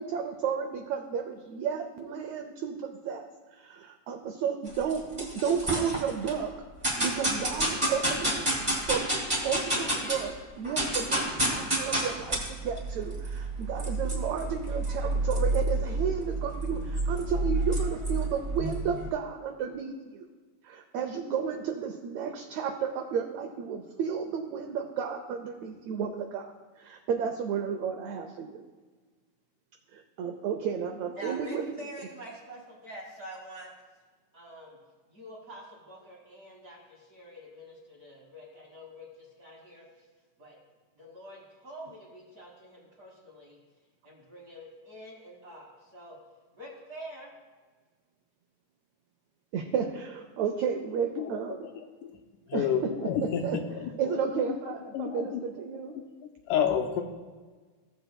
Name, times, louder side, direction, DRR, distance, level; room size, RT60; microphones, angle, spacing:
voice 1, 0.0-6.5 7.0-8.5 8.8-9.1 9.4-20.2 20.6-28.6 29.9-31.7 49.5-51.7 52.5-53.1 53.4-53.6 54.0-55.9, right 7 dB, 90° right, 5 dB, 1.5 m, -32 dB
sound 1, 4.7-6.3 6.8-10.3 10.6-19.1, right 1 dB, 10° right, 2.0 m, -30 dB
voice 2, 31.1-33.7 34.3-34.8 35.1-39.9 40.4-40.6 41.0-43.6 44.0-46.2 46.5-47.3, equal, 45° right, -3 dB, 1.2 m, -46 dB
voice 3, 52.5-54.6 54.9-55.5 56.2-57.0, left 8 dB, 80° left, 4 dB, 2.0 m, -30 dB
16.0 x 7.7 x 2.2 m, 1.4 s
omnidirectional pair, 3.9 m